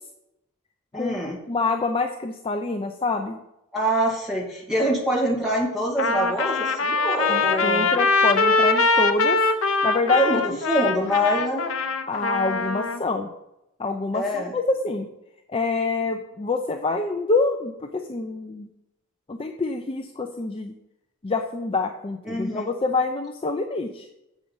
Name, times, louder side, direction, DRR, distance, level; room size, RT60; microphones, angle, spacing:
voice 1, 0.9-1.4 3.7-8.0 10.1-11.7 14.1-14.6 22.3-22.7, equal, ahead, -4 dB, 2.1 m, -25 dB
voice 2, 1.5-3.4 7.3-9.4 9.8-10.6 12.1-13.3 13.8-15.1 15.5-18.7 19.3-20.7 21.2-24.1, left 3 dB, 25° left, 5 dB, 0.4 m, -26 dB
Trumpet, 6.0-13.0, left 3 dB, 75° left, 0.7 m, -22 dB
7.5 x 6.2 x 5.3 m, 0.87 s
head